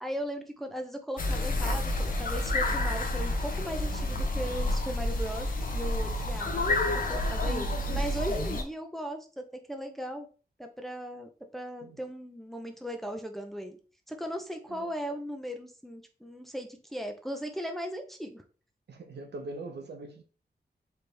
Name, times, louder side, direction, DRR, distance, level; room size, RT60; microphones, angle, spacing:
voice 1, 0.0-10.3 10.6-13.8 14.1-18.4, equal, ahead, 0.5 m, -38 dB
sound 1, 1.2-8.6, left 1 dB, 55° left, 0.9 m, -29 dB
voice 2, 18.9-20.2, right 2 dB, 85° right, 0.9 m, -42 dB
4.3 x 3.4 x 3.3 m
wide cardioid pair, 150°, 17 cm